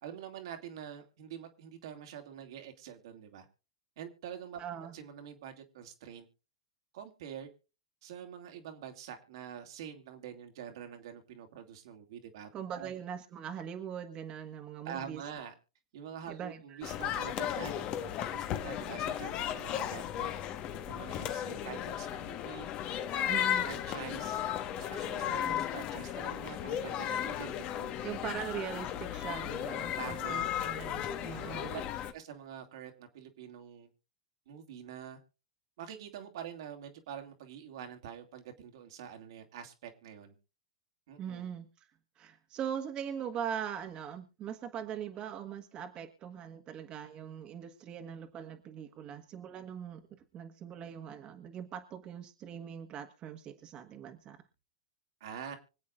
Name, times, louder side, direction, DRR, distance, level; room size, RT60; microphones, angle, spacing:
voice 1, 0.0-3.5 4.0-4.6 4.9-6.3 6.9-7.5 8.0-12.9 14.8-15.5 15.9-20.3 20.9-22.7 23.2-24.4 24.8-28.0 29.9-30.5 31.5-31.8 32.1-33.9 34.5-35.2 35.8-40.4 41.1-41.5 55.2-55.6, right 8 dB, 70° right, 5 dB, 2.3 m, -46 dB
voice 2, 4.6-4.9 12.5-15.2 16.3-16.8 23.3-23.6 25.2-25.6 28.0-31.7 41.2-41.9 42.2-50.0 50.3-54.4, right 8 dB, 35° right, 5 dB, 1.5 m, -41 dB
sound 1, 16.8-32.1, left 11 dB, 40° left, 1.4 m, -35 dB
25.5 x 8.4 x 2.5 m, 0.33 s
hypercardioid pair, 105°, 3 cm